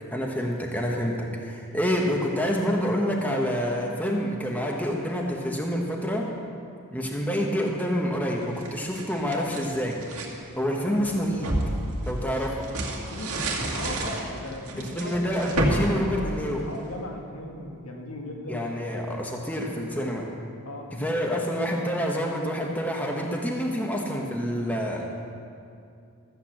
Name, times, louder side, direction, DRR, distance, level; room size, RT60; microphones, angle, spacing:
voice 1, 0.1-6.3 6.9-10.0 10.6-11.5 12.0-12.7 14.8-16.6 18.5-20.3 20.9-25.0, equal, 5° left, -1 dB, 1.1 m, -27 dB
sound 1, 8.4-10.4 10.9-16.9, right 1 dB, 80° right, 2.1 m, -30 dB
voice 2, 13.1-13.5 13.7-15.1 16.1-16.4 16.6-18.6 19.9-20.2 20.6-21.5 23.7-23.8, left 1 dB, 75° left, 0 dB, 1.9 m, -38 dB
14.5 x 8.2 x 7.2 m, 2.5 s
head